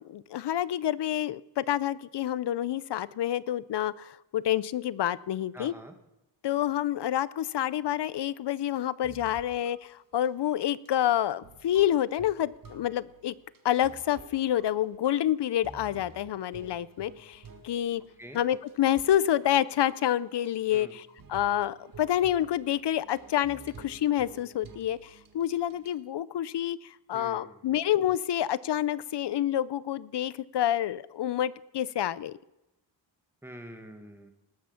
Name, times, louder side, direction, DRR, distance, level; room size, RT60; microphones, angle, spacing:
voice 1, 0.0-5.7 6.4-13.3 13.6-18.0 18.3-32.4, left 11 dB, 65° left, 0.6 m, -28 dB
voice 2, 5.5-5.9 18.2-18.4 20.7-21.0 27.1-27.6 33.4-34.3, equal, 5° right, 1.8 m, -45 dB
sound 1, 9.0-9.8 10.1-10.3 10.7-26.0, right 4 dB, 50° right, 1.8 m, -52 dB
19.5 x 8.7 x 5.8 m
wide cardioid pair, 125°, 44 cm